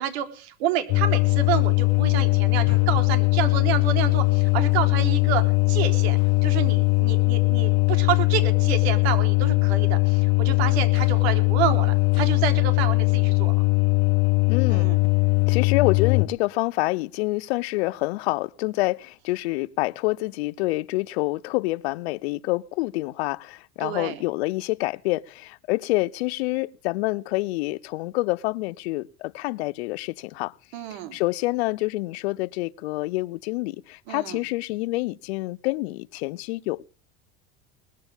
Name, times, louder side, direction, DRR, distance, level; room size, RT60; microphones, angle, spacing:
voice 1, 0.0-13.6 14.7-15.0 23.8-24.2 30.7-31.2 34.1-34.4, right 10 dB, 80° right, 3.8 m, -29 dB
sound 1, 0.9-16.3, left 29 dB, 55° left, 1.2 m, -20 dB
voice 2, 14.5-14.9 15.5-30.5 30.9-36.8, left 21 dB, 80° left, 0.8 m, -27 dB
20.5 x 14.5 x 3.6 m
supercardioid pair, 125°, 31 cm